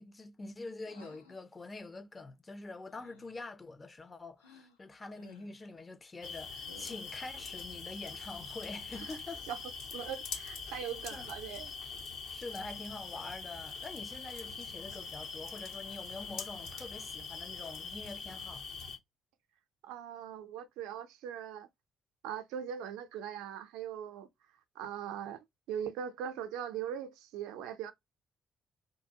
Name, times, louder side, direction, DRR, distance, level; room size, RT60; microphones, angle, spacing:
voice 1, 0.0-9.4 11.1-11.3 12.3-18.7, left 3 dB, 25° left, 0.5 m, -45 dB
sound 1, 0.9-1.4 2.9-3.4 4.4-4.8 5.1-5.6 6.6-7.2, left 4 dB, 80° left, 0.4 m, -57 dB
sound 2, 6.2-19.0, left 5 dB, 65° left, 0.8 m, -43 dB
voice 2, 9.9-11.7 19.8-21.7 22.2-24.3 24.8-27.9, right 9 dB, 65° right, 0.4 m, -40 dB
2.7 x 2.1 x 2.7 m
figure-of-eight pair, 40°, 0 cm